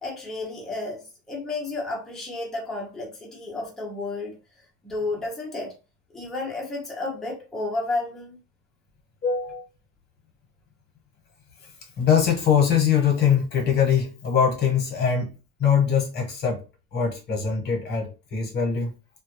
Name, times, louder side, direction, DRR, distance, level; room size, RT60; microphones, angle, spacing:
voice 1, 0.0-4.4 4.8-5.7 6.1-8.4, left 2 dB, ahead, 0.4 m, -32 dB
voice 2, 9.2-9.6 11.6-11.7 12.0-15.3 15.6-16.6 16.9-18.9, left 7 dB, 25° left, 0.9 m, -22 dB
2.2 x 2.0 x 2.9 m
cardioid pair, 155°, 37 cm